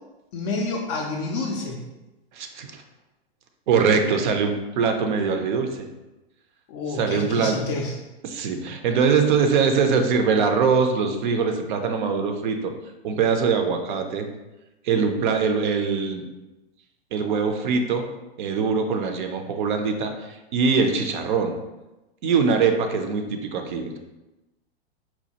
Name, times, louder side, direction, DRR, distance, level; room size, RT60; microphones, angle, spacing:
voice 1, 0.3-1.8 6.7-7.9, left 3 dB, 30° left, -1 dB, 0.4 m, -28 dB
voice 2, 2.3-2.8 3.7-5.9 6.9-7.6 8.2-12.7 13.0-14.3 14.8-16.2 17.1-18.1 18.4-21.6 22.2-24.0, right 5 dB, 50° right, 6 dB, 0.5 m, -22 dB
4.2 x 2.2 x 2.8 m, 1.0 s
hypercardioid pair, 120°, 32 cm